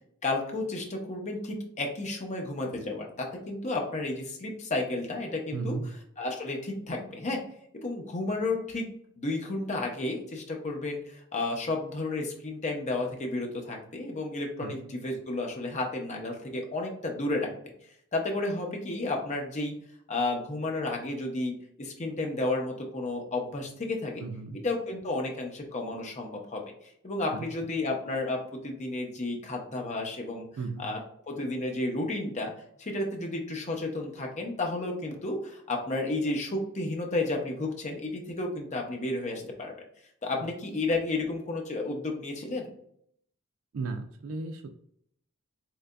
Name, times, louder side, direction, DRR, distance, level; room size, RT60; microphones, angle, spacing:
voice 1, 0.2-5.8 6.2-7.4 7.8-8.9 9.2-17.7 18.1-19.7 20.1-24.2 24.6-26.6 27.0-30.5 30.8-31.0 31.3-32.5 32.8-39.7 40.2-42.7, left 2 dB, 35° left, 1 dB, 0.8 m, -32 dB
voice 2, 5.5-5.9 14.6-14.7 24.2-24.6 27.3-27.5 30.6-30.9 40.4-40.5 43.7-44.7, right 4 dB, 70° right, 4 dB, 0.4 m, -35 dB
3.7 x 3.3 x 2.2 m, 0.68 s
head